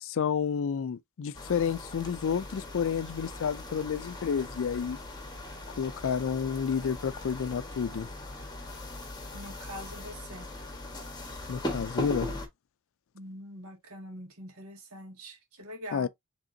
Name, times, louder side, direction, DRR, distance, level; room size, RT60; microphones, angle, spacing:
voice 1, 0.0-5.0 5.8-8.1 11.5-12.3 15.9-16.1, left 7 dB, 65° left, 0.4 m, -30 dB
sound 1, 1.3-12.5, left 1 dB, 20° left, 1.3 m, -40 dB
voice 2, 9.3-10.5 13.1-16.1, equal, 75° right, 1.9 m, -44 dB
5.1 x 3.6 x 2.6 m
head